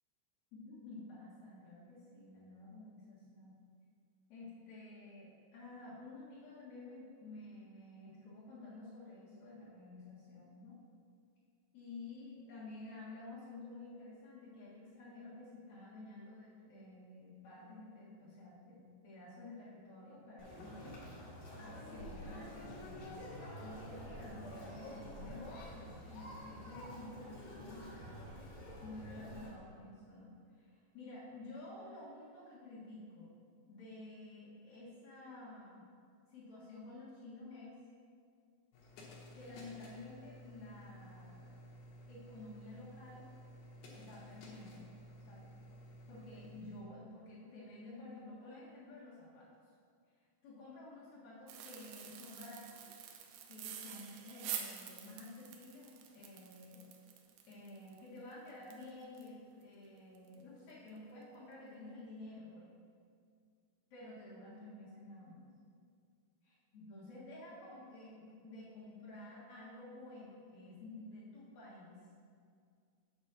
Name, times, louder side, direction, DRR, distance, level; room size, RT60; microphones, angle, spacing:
voice 1, 0.5-3.6 4.3-10.8 11.7-21.2 21.6-23.2 23.6-33.3 33.6-35.8 36.3-37.7 39.3-41.6 42.1-43.3 43.9-44.9 45.2-45.5 46.1-49.5 50.4-52.8 53.5-56.8 57.5-62.7 63.9-65.5 66.7-72.0, left 2 dB, 85° left, -9 dB, 1.6 m, -51 dB
Conversation, 20.4-29.5, equal, 55° left, 2.9 m, -48 dB
sound 1, 38.7-46.8, equal, 70° left, 2.9 m, -54 dB
sound 2, 51.5-59.3 59.6-59.7 60.2-60.4 60.7-60.9, right 9 dB, 85° right, 3.3 m, -47 dB
8.1 x 4.4 x 6.7 m, 2.2 s
omnidirectional pair, 5.9 m